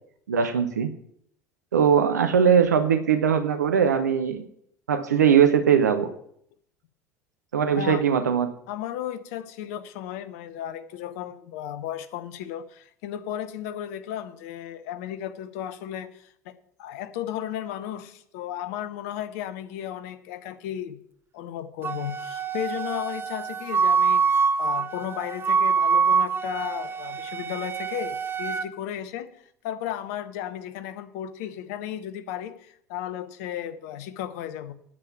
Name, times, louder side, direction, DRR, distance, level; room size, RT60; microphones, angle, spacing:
voice 1, 0.3-0.9 1.7-4.4 4.9-6.1 7.5-8.6, right 7 dB, 75° right, 0.8 m, -20 dB
voice 2, 8.7-16.5 16.8-21.0 21.3-29.3 29.6-34.7, left 11 dB, 60° left, 1.0 m, -34 dB
Wind instrument woodwind instrument, 21.8-28.7, right 6 dB, 25° right, 0.7 m, -25 dB
9.7 x 7.7 x 7.2 m
figure-of-eight pair, 70°, 9 cm